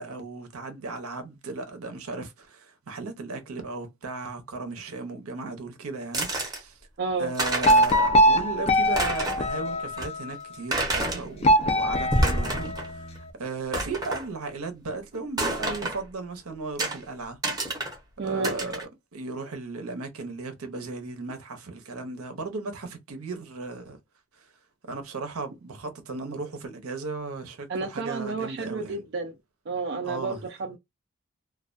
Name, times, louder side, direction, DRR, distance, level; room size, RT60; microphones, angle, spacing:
voice 1, 0.0-6.8 7.2-17.4 18.2-18.8 19.1-24.0 24.3-24.5 24.9-29.0 30.0-30.5, right 3 dB, 85° right, 0.7 m, -36 dB
sound 1, 6.1-6.6 7.1-7.2 7.3-8.1 8.4-8.5 8.8-9.5 10.0-10.1 10.7-11.2 11.9-12.9 13.1-13.2 13.7-14.2 15.4-16.0 16.8-17.0 17.4-18.0 18.4-18.8, right 1 dB, 15° right, 0.7 m, -28 dB
voice 2, 7.0-7.3 18.2-18.5 27.7-29.3 29.7-30.8, right 4 dB, 50° right, 0.4 m, -30 dB
sound 2, 7.6-10.3 11.4-13.2, equal, 30° left, 0.3 m, -22 dB
2.3 x 2.2 x 2.4 m
head